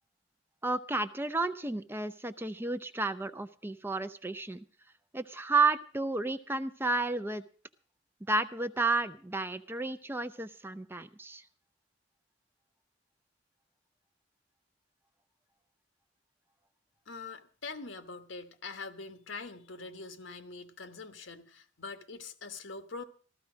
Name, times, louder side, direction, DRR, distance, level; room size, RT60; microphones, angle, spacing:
voice 1, 0.6-4.6 5.1-7.4 8.3-11.4, right 3 dB, 10° right, 0.6 m, -32 dB
voice 2, 17.1-23.0, left 4 dB, 80° left, 1.4 m, -43 dB
14.5 x 13.5 x 5.1 m
head